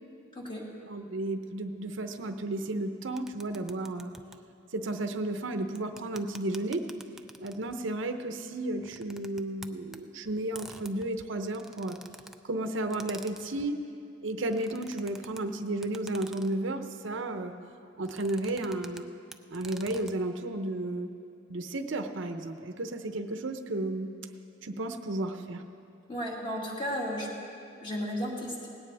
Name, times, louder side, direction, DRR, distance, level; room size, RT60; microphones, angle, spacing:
voice 1, 0.3-0.7 26.1-27.3 27.8-28.7, equal, 25° left, -3 dB, 2.2 m, -34 dB
voice 2, 0.9-4.1 4.7-6.9 7.4-12.0 12.4-13.8 14.2-17.5 18.0-19.1 19.5-21.1 21.5-24.1 24.6-25.6, right 2 dB, 70° right, 7 dB, 0.7 m, -33 dB
sound 1, 3.2-4.4 5.8-7.8 8.8-10.0 10.5-12.4 12.9-13.7 14.4-15.4 15.8-16.6 18.0-19.0 19.3-20.1, right 1 dB, ahead, 0.3 m, -48 dB
18.5 x 17.0 x 3.4 m, 2.6 s
head